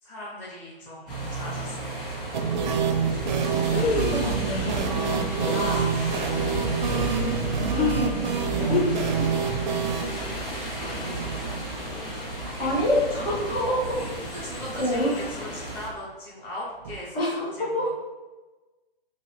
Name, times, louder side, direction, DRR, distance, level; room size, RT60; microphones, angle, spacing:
voice 1, 0.0-2.2 6.0-6.2 9.6-9.9 10.4-11.5 12.5-12.8 13.1-13.8 14.3-17.9, left 1 dB, 5° left, -8 dB, 0.5 m, -39 dB
sound 1, 1.1-15.9, right 1 dB, 25° left, 1.4 m, -35 dB
sound 2, 2.3-14.1 14.3-14.4 14.7-14.8 16.8-17.0, right 6 dB, 50° right, 0.4 m, -28 dB
sound 3, 3.1-3.2 3.6-15.9, left 5 dB, 90° left, 0.5 m, -34 dB
voice 2, 3.9-5.9 7.2-8.8 12.6-13.8 14.5-15.1 17.1-17.9, equal, 70° left, -5 dB, 1.4 m, -28 dB
3.0 x 2.6 x 3.0 m, 1.2 s
hypercardioid pair, 140°, 30 cm